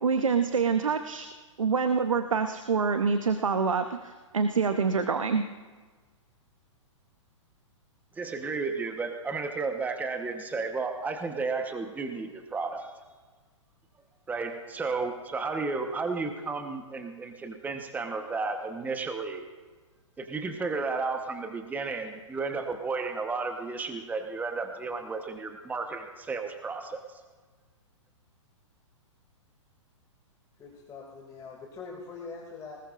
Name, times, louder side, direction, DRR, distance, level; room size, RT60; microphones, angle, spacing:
voice 1, 0.0-1.3 1.6-5.5, right 5 dB, 85° right, 8 dB, 0.8 m, -26 dB
voice 2, 8.1-12.9 14.3-19.5 20.2-27.2, right 4 dB, 10° right, 5 dB, 1.1 m, -33 dB
voice 3, 30.6-32.8, left 4 dB, 20° left, -1 dB, 2.4 m, -43 dB
20.0 x 18.5 x 2.5 m, 1.4 s
hypercardioid pair, 120°, 16 cm